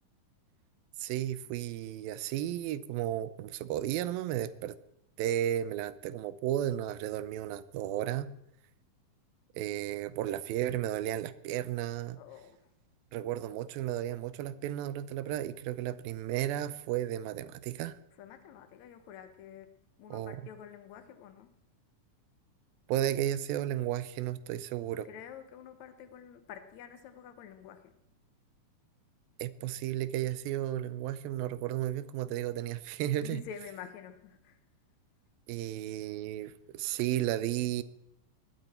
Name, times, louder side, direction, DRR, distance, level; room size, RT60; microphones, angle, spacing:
voice 1, 1.0-4.8 5.2-8.3 9.6-12.2 13.1-18.0 20.1-20.4 22.9-25.1 29.4-33.4 35.5-37.8, right 12 dB, 85° right, 2.5 m, -33 dB
voice 2, 12.2-12.6 18.2-21.5 25.1-27.9 33.2-34.6, left 8 dB, 65° left, 2.0 m, -48 dB
19.5 x 12.0 x 4.3 m
omnidirectional pair, 4.1 m